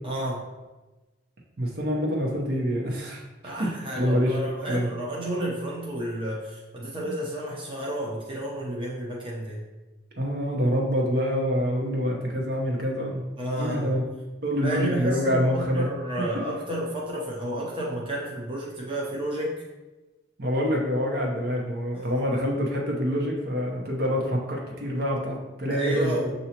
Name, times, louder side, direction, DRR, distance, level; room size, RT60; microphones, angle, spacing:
voice 1, 0.0-0.4 3.4-9.6 13.4-13.9 14.6-19.5 21.9-22.2 25.7-26.3, right 1 dB, 30° right, -4 dB, 0.7 m, -31 dB
voice 2, 1.6-4.4 4.7-4.9 7.0-7.1 10.2-13.3 13.6-14.0 14.4-15.9 20.4-26.3, equal, 55° right, -1 dB, 0.9 m, -26 dB
6.7 x 2.7 x 2.9 m, 1.1 s
head